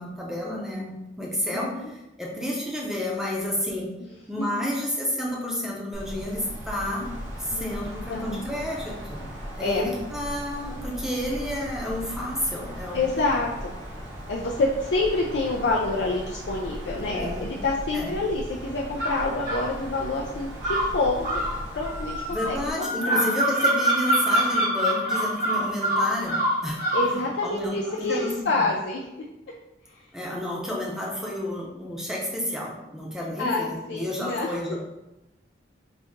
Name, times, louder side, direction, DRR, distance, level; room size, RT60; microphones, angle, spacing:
voice 1, 0.0-3.9 4.3-7.1 7.4-9.3 9.6-13.1 17.0-17.5 17.9-18.2 22.3-28.6 30.1-34.8, left 1 dB, 5° right, -3 dB, 0.7 m, -30 dB
voice 2, 1.5-1.9 4.0-4.1 4.4-4.7 7.5-7.7 8.1-8.5 9.6-9.8 12.9-13.7 14.3-21.4 21.7-23.3 26.9-29.1 29.9-30.1 33.4-34.6, left 2 dB, 70° left, -2 dB, 0.4 m, -27 dB
Wind, 5.9-22.7, equal, 85° right, 1.2 m, -38 dB
sound 1, 19.0-19.7 20.6-27.1, right 1 dB, 50° right, 1.2 m, -25 dB
4.1 x 2.8 x 3.5 m, 0.96 s
head